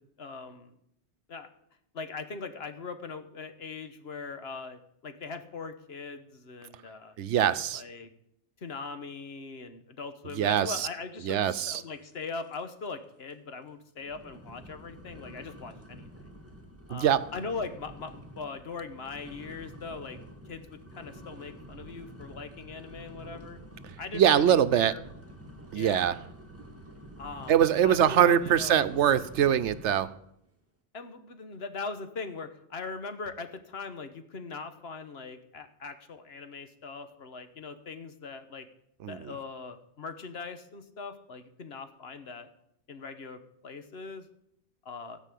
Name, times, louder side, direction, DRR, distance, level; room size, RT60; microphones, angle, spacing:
voice 1, 0.2-0.8 1.3-1.5 1.9-7.1 7.7-8.1 8.6-16.1 16.9-20.2 20.5-23.6 24.0-25.0 25.7-26.1 27.2-27.5 27.8-28.8 30.9-38.7 39.1-42.5 42.9-44.3 44.8-45.2, left 4 dB, 65° left, 9 dB, 1.3 m, -40 dB
voice 2, 7.2-7.8 10.4-10.9 11.2-11.8 16.9-17.2 24.1-24.9 25.7-26.1 27.5-30.1 39.0-39.3, right 9 dB, 80° right, 13 dB, 1.0 m, -23 dB
sound 1, 11.8-12.2 12.5-12.9 13.3-13.4 14.0-30.1, right 1 dB, 10° right, 1.9 m, -48 dB
16.5 x 5.4 x 8.3 m, 0.75 s
omnidirectional pair, 1.2 m